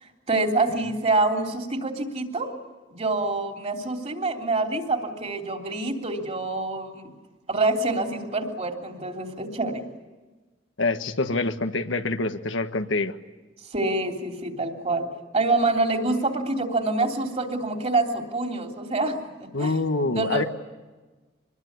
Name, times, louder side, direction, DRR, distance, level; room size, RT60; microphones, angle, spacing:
voice 1, 0.3-2.5 2.9-7.1 7.5-9.8 13.7-15.1 15.3-20.5, right 2 dB, 35° right, 4 dB, 3.2 m, -26 dB
voice 2, 10.8-13.2 19.5-20.4, left 3 dB, 85° left, 8 dB, 1.5 m, -25 dB
25.0 x 21.0 x 9.6 m, 1.2 s
head